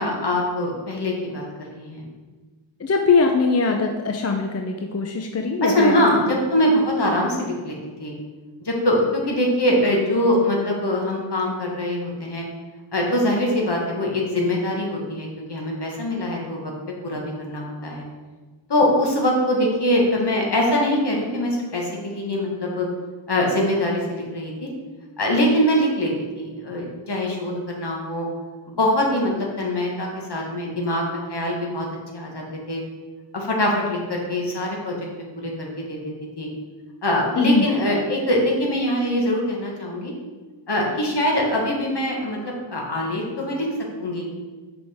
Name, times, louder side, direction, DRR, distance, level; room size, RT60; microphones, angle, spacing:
voice 1, 0.0-2.0 5.6-8.1 8.6-12.4 12.9-16.7 17.0-18.1 18.7-22.9 23.3-24.7 25.2-28.3 28.8-31.9 32.1-32.8 33.3-34.9 35.4-36.5 37.0-40.1 40.7-43.7 44.0-44.3, left 1 dB, 60° left, -1 dB, 1.4 m, -23 dB
voice 2, 2.8-6.1 37.3-37.7, left 4 dB, 35° left, 3 dB, 0.5 m, -21 dB
6.0 x 5.1 x 3.5 m, 1.3 s
wide cardioid pair, 80°, 47 cm